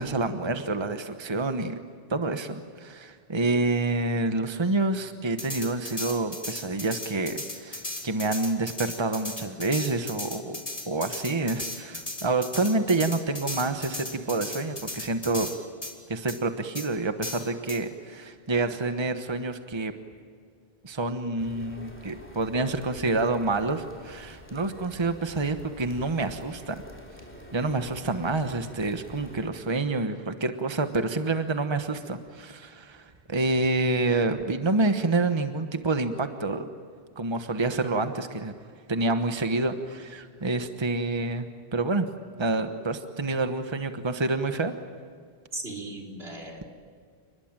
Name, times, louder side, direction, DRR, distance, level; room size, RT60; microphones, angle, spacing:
voice 1, 0.0-1.8 2.1-10.6 10.9-15.5 16.1-19.9 20.8-26.8 27.5-36.7 37.2-38.5 38.9-41.5 41.7-42.1 42.4-44.7, right 2 dB, 25° right, 8 dB, 1.2 m, -28 dB
sound 1, 5.4-15.6 15.8-15.9 16.3-16.4 16.8-16.9 17.2-17.8, left 2 dB, 35° left, 3.3 m, -36 dB
sound 2, 21.4-29.5, equal, 10° left, 3.3 m, -47 dB
voice 2, 45.5-46.7, right 2 dB, 80° right, 2 dB, 4.8 m, -37 dB
29.5 x 20.5 x 9.0 m, 2.1 s
omnidirectional pair, 1.0 m